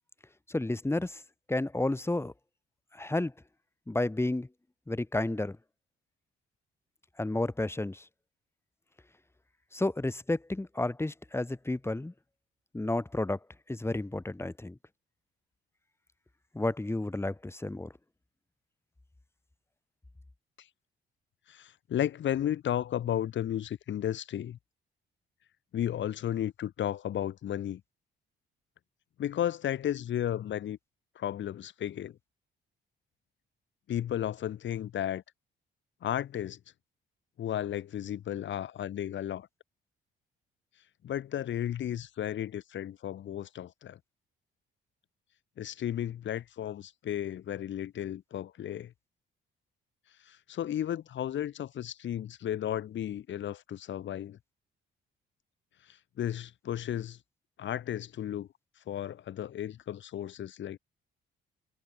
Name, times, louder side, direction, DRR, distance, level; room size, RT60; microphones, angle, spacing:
voice 1, 0.5-1.2 1.5-2.3 2.9-3.3 3.9-4.5 4.9-5.6 7.2-8.1 9.7-12.1 12.7-13.4 13.7-14.8 16.5-17.9, left 2 dB, 10° left, 3.9 m, -31 dB
voice 2, 21.5-24.6 25.7-27.8 29.2-30.8 31.2-32.2 33.9-35.2 36.0-36.6 37.4-39.5 41.0-44.0 45.6-48.9 50.2-54.4 55.9-57.2 57.6-58.5 58.9-60.8, left 11 dB, 70° left, 5.4 m, -34 dB
cardioid pair, 90°, 20 cm